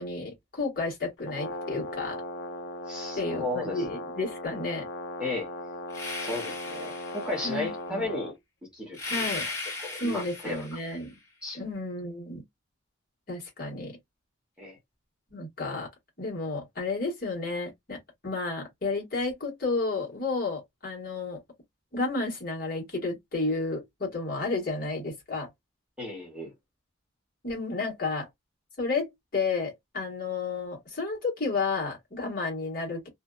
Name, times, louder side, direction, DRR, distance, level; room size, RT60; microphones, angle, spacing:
voice 1, 0.0-2.2 3.1-4.8 7.4-8.1 9.0-9.5 10.0-11.1 11.6-12.4 13.3-14.0 15.3-15.9 16.2-18.0 18.2-21.4 21.9-25.5 27.4-28.3 28.8-33.1, left 3 dB, 45° left, 1.4 m, -32 dB
Brass instrument, 1.2-8.4, left 1 dB, 65° left, 0.5 m, -38 dB
voice 2, 2.9-3.8 5.2-5.5 6.2-8.3 8.7-9.3 9.8-10.6 11.4-11.6 14.6-14.8 26.0-26.5, left 2 dB, 5° right, 0.9 m, -34 dB
sound 1, 5.9-7.6 8.9-11.0, left 3 dB, 20° left, 1.5 m, -37 dB
2.6 x 2.3 x 2.2 m
head